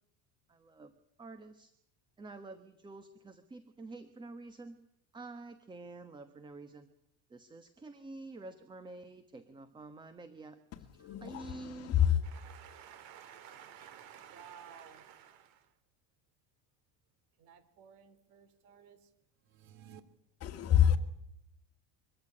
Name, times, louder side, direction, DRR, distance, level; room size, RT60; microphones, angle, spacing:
voice 1, 0.5-1.7 2.2-4.8 5.1-6.9 7.3-10.6 11.2-11.9, right 3 dB, 10° right, 1.2 m, -48 dB
voice 2, 10.7-12.2 20.4-21.0, left 10 dB, 40° left, 2.2 m, -28 dB
voice 3, 12.2-15.7 17.4-19.1, right 9 dB, 65° right, 3.7 m, -53 dB
sound 1, 19.4-20.0, right 9 dB, 80° right, 2.3 m, -54 dB
24.5 x 15.5 x 9.9 m
cardioid pair, 150°, 38 cm